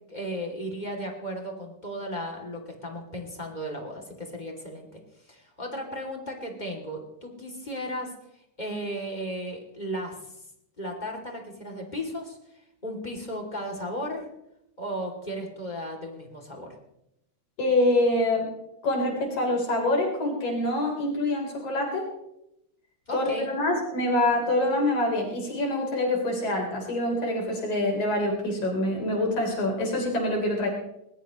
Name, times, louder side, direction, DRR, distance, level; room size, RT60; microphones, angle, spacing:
voice 1, 0.1-5.0 5.3-8.1 8.6-10.2 10.8-12.4 12.8-14.3 14.8-16.7 23.1-23.5, equal, 15° left, 1 dB, 2.6 m, -35 dB
voice 2, 17.6-18.5 18.8-22.1 23.1-30.7, left 1 dB, 65° left, -1 dB, 5.2 m, -25 dB
20.5 x 20.0 x 3.1 m, 0.83 s
omnidirectional pair, 3.7 m